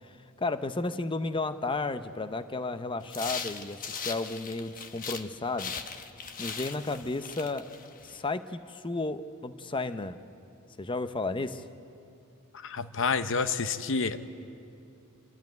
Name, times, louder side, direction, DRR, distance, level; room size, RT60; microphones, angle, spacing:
voice 1, 0.4-5.7 6.4-7.7 8.0-10.2 10.8-11.6, left 3 dB, 25° left, 11 dB, 0.7 m, -33 dB
sound 1, 3.1-5.3 5.6-8.2, left 6 dB, 40° left, 1.0 m, -39 dB
voice 2, 12.5-14.2, left 5 dB, 65° left, 11 dB, 0.8 m, -29 dB
26.5 x 13.0 x 9.4 m, 2.6 s
head